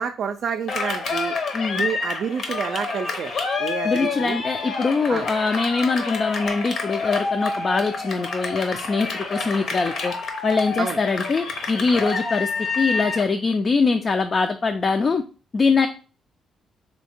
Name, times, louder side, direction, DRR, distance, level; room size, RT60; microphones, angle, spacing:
voice 1, 0.0-1.3 1.8-3.3 3.6-4.4 5.1-5.3 10.8-11.0, right 7 dB, 60° right, 5 dB, 0.3 m, -28 dB
Cheering, 0.7-13.3, left 4 dB, 60° left, 0.9 m, -28 dB
voice 2, 1.5-1.8 3.8-10.1 10.4-12.5 12.8-15.2 15.5-15.9, left 4 dB, 40° left, 7 dB, 0.3 m, -23 dB
3.1 x 2.7 x 4.3 m, 0.36 s
cardioid pair, 90°, 0 cm